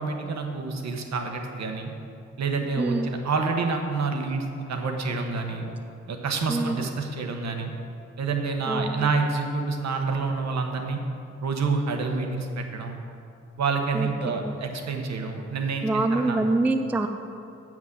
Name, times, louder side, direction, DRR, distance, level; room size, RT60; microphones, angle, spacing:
voice 1, 0.0-1.9 2.4-5.6 6.1-7.7 8.2-11.0 11.4-13.0 13.6-16.4, right 4 dB, 65° right, 4 dB, 1.1 m, -28 dB
voice 2, 2.8-3.1 6.5-6.8 8.7-9.1 13.9-14.5 15.8-17.1, right 2 dB, 5° right, 7 dB, 0.3 m, -25 dB
7.3 x 6.1 x 7.7 m, 2.6 s
wide cardioid pair, 145°, 29 cm